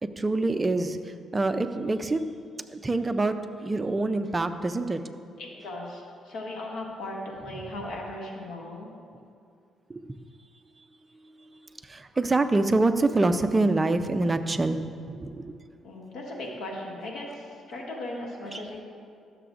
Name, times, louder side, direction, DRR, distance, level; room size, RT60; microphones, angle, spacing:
voice 1, 0.0-2.2 2.7-5.0 9.9-10.2 11.8-15.5 18.5-18.6, right 2 dB, 25° right, 9 dB, 0.4 m, -26 dB
voice 2, 5.4-8.9 15.8-18.8, left 1 dB, 80° left, -1 dB, 1.4 m, -37 dB
12.5 x 6.8 x 2.5 m, 2.3 s
cardioid pair, 90°, 0 cm